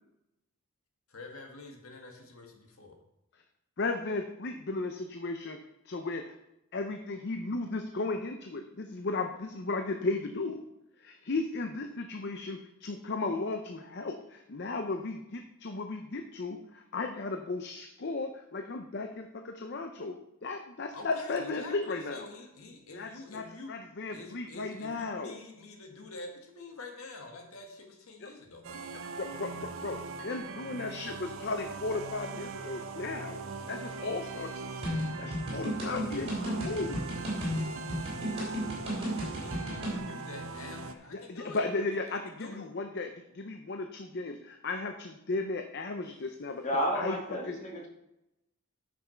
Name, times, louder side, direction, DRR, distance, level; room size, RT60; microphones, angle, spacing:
voice 1, 1.1-3.0 20.9-23.7 24.1-29.0 38.8-42.6, left 3 dB, 80° left, 2 dB, 1.7 m, -47 dB
voice 2, 3.8-5.6 5.8-6.4 6.7-10.6 11.0-22.2 22.9-25.4 28.2-28.3 29.2-33.4 33.7-34.9 35.2-37.0 41.1-46.6 46.9-47.2 47.4-47.6, left 3 dB, 50° left, 6 dB, 0.6 m, -35 dB
sound 1, 28.6-40.9, right 4 dB, 65° right, 0.7 m, -41 dB
sound 2, 34.8-40.0, equal, 25° right, 3.3 m, -34 dB
voice 3, 46.6-47.9, equal, 35° left, 0 dB, 1.7 m, -31 dB
9.4 x 6.2 x 4.4 m, 0.89 s
head